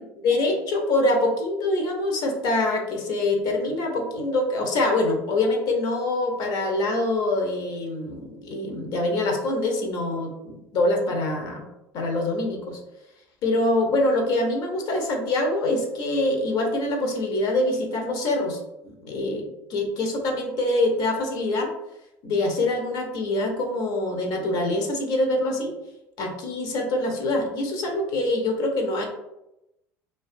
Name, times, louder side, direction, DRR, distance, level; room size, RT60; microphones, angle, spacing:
voice 1, 0.0-11.7 11.9-12.8 13.4-18.6 18.8-21.7 22.2-25.7 26.2-29.0, left 2 dB, 60° left, 2 dB, 0.6 m, -25 dB
2.3 x 2.2 x 2.4 m, 0.89 s
hypercardioid pair, 75°, 8 cm